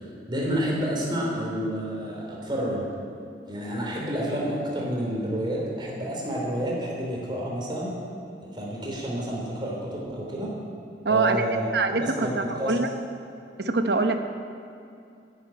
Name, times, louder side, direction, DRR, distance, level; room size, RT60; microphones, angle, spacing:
voice 1, 0.3-2.9 3.5-7.9 8.5-10.5 11.0-11.7 12.0-12.3 12.6-12.7, equal, 25° right, -3 dB, 3.6 m, -29 dB
voice 2, 11.0-11.4 11.7-12.9 13.6-14.2, right 3 dB, 65° right, 7 dB, 1.0 m, -24 dB
11.0 x 9.6 x 9.0 m, 2.5 s
head